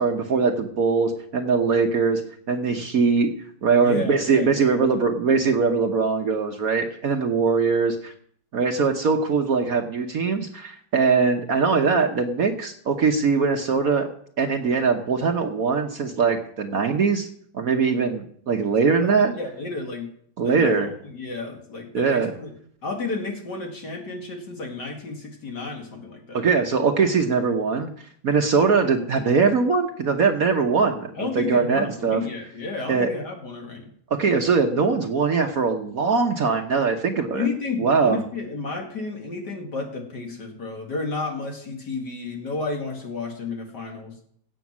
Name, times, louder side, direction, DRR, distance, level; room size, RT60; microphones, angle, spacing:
voice 1, 0.0-2.2 2.5-3.3 3.6-8.1 8.5-14.1 14.4-17.3 17.5-19.3 20.4-20.9 21.9-22.3 26.3-27.9 28.2-31.1 31.4-32.2 32.9-33.1 34.1-37.5 37.8-38.2, right 5 dB, 55° right, 4 dB, 1.2 m, -21 dB
voice 2, 3.8-4.7 19.0-19.1 19.3-20.1 20.4-22.5 22.8-26.5 31.1-33.9 37.3-44.2, left 3 dB, 55° left, 1 dB, 2.8 m, -32 dB
16.5 x 6.3 x 6.1 m, 0.63 s
omnidirectional pair, 2.1 m